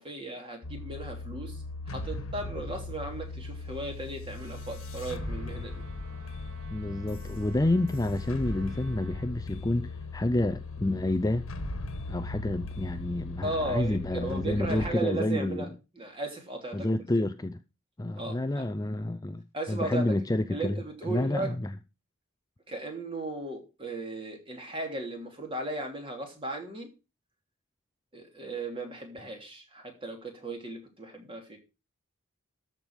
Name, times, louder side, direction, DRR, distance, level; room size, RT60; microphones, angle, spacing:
voice 1, 0.0-5.8 13.4-16.9 18.1-18.7 19.5-20.1 20.5-21.5 22.7-26.9 28.1-31.6, right 2 dB, 25° right, 3.0 m, -36 dB
sound 1, 0.6-14.9, left 2 dB, 80° left, 1.5 m, -38 dB
Trumpet, 4.3-9.3, right 3 dB, 75° right, 2.8 m, -54 dB
voice 2, 6.7-11.4 12.1-15.7 16.7-17.6 18.0-21.7, left 1 dB, 15° left, 0.5 m, -29 dB
13.5 x 5.3 x 6.3 m
head